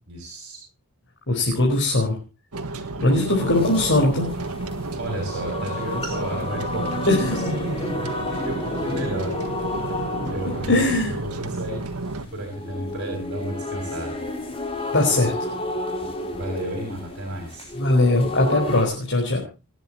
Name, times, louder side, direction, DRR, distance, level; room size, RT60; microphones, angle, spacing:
voice 1, 0.1-0.6 4.9-9.3 10.3-10.8 11.2-14.2 16.3-17.7, right 1 dB, 50° right, 2 dB, 6.7 m, -32 dB
voice 2, 1.3-2.2 3.0-4.3 7.1-7.5 10.7-11.1 14.9-15.3 17.8-19.4, left 2 dB, 55° left, -1 dB, 4.7 m, -20 dB
sound 1, 2.5-12.3, right 2 dB, 85° right, 1.7 m, -31 dB
sound 2, 3.4-18.8, left 1 dB, 25° left, 3.9 m, -31 dB
30.0 x 10.0 x 2.9 m, 0.31 s
head